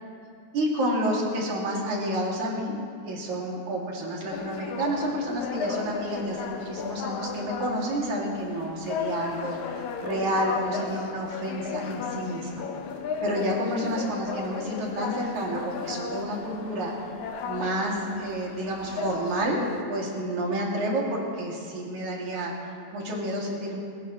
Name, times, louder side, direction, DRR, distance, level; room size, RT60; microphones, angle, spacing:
voice 1, 0.5-2.7 3.1-12.6 13.2-17.0 17.5-19.6 19.9-23.8, right 1 dB, 85° right, -3 dB, 4.1 m, -30 dB
sound 1, 4.3-19.8, left 6 dB, 80° left, 2.3 m, -35 dB
25.0 x 17.0 x 3.2 m, 2.3 s
omnidirectional pair, 3.4 m